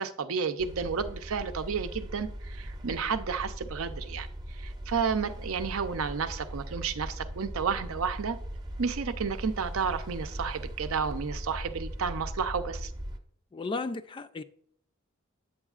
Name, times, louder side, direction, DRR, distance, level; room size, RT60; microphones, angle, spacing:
voice 1, 0.0-4.3 4.6-8.4 8.8-12.9, right 6 dB, 75° right, 0.6 m, -31 dB
sound 1, 0.6-13.2, equal, 20° right, 0.6 m, -39 dB
voice 2, 13.5-14.4, left 3 dB, 25° left, 0.3 m, -34 dB
8.5 x 7.9 x 2.4 m
head